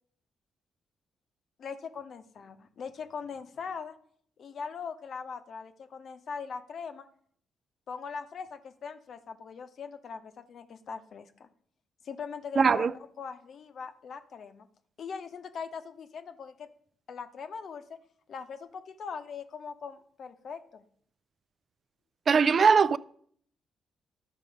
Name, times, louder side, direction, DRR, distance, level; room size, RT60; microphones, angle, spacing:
voice 1, 1.6-4.0 4.4-7.1 7.9-11.5 12.0-12.9 13.2-14.7 15.0-16.7 17.1-17.8 18.3-20.8, left 6 dB, 65° left, 0.8 m, -41 dB
voice 2, 12.6-12.9 22.3-23.0, right 5 dB, 50° right, 0.3 m, -21 dB
12.0 x 5.2 x 5.1 m
cardioid pair, 75°, 0 cm